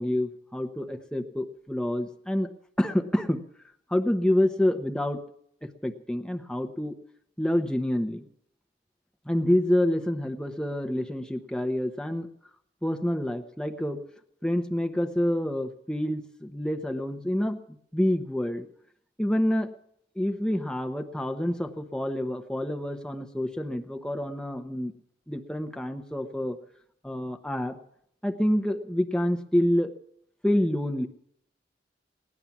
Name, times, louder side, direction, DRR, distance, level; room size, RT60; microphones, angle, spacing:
voice 1, 0.0-2.5 2.8-3.4 3.9-5.2 5.6-6.9 7.4-8.2 9.3-12.3 12.8-14.0 14.4-17.6 17.9-18.7 19.2-19.7 20.2-24.9 25.3-26.6 27.0-27.8 28.2-29.9 30.4-31.1, left 1 dB, 5° left, 5 dB, 0.9 m, -27 dB
18.0 x 11.0 x 7.2 m, 0.67 s
head